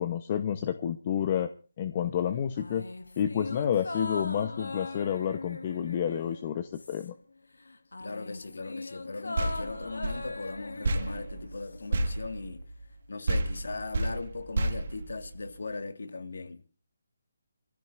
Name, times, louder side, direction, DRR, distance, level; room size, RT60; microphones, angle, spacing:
voice 1, 0.0-1.5 1.8-2.8 3.2-7.1, left 9 dB, 35° left, 1.0 m, -29 dB
sound 1, 2.6-7.3 7.6-11.9 12.2-12.3, left 3 dB, 90° left, 1.7 m, -40 dB
voice 2, 8.0-12.6 13.1-16.6, left 3 dB, 75° left, 1.9 m, -39 dB
sound 2, 9.3-13.0 13.3-15.7, right 2 dB, 55° right, 1.8 m, -32 dB
25.5 x 15.5 x 2.6 m
figure-of-eight pair, 155°, 0 cm